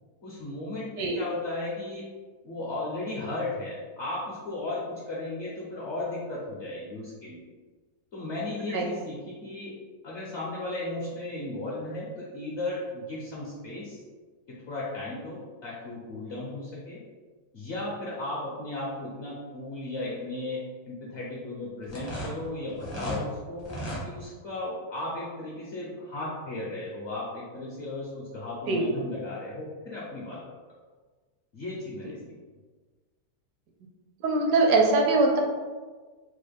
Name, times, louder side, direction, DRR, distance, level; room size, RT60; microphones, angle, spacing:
voice 1, 0.2-2.1 2.4-7.5 8.1-9.8 10.0-14.0 14.5-17.0 17.5-23.7 24.0-30.4 31.5-32.2, left 2 dB, 60° left, -5 dB, 0.7 m, -35 dB
sound 1, 21.8-23.2 23.6-24.0, equal, 30° left, 0.5 m, -35 dB
voice 2, 34.2-35.4, right 3 dB, 75° right, 1 dB, 1.0 m, -22 dB
3.8 x 2.1 x 3.4 m, 1.4 s
omnidirectional pair, 1.9 m